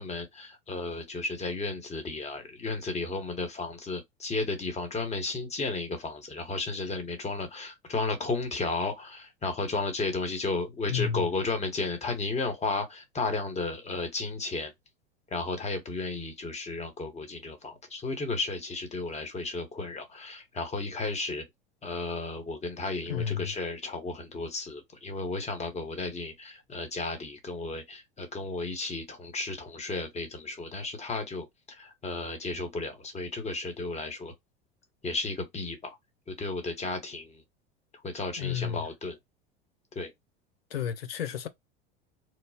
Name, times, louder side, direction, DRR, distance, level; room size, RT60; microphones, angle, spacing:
voice 1, 0.0-14.7 15.3-21.4 21.8-34.3 35.0-36.0 36.3-37.4 38.0-39.2 39.9-40.1, left 3 dB, 25° left, 1.2 m, -33 dB
voice 2, 10.9-11.3 23.0-23.5 38.4-38.8 40.7-41.5, left 9 dB, 90° left, 0.5 m, -31 dB
3.0 x 2.1 x 2.7 m
hypercardioid pair, 85°, 29 cm